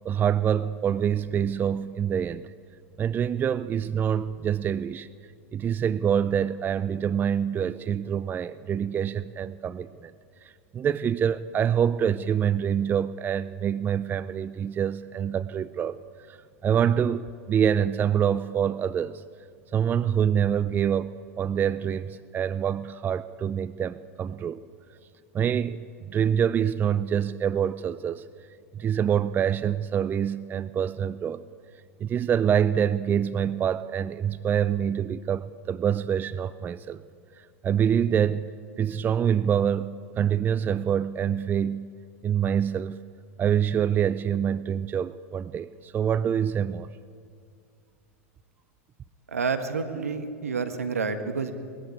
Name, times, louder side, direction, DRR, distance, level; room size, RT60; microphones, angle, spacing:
voice 1, 0.0-2.5 3.0-5.1 5.5-10.1 10.4-16.0 16.3-19.2 19.7-24.6 25.3-28.2 28.7-31.4 32.0-37.0 37.4-41.8 42.2-43.0 43.4-46.9, right 8 dB, 25° right, 16 dB, 0.5 m, -26 dB
voice 2, 49.3-51.5, right 5 dB, 90° right, 7 dB, 1.6 m, -29 dB
20.0 x 14.0 x 9.6 m, 2.2 s
hypercardioid pair, 95°, 8 cm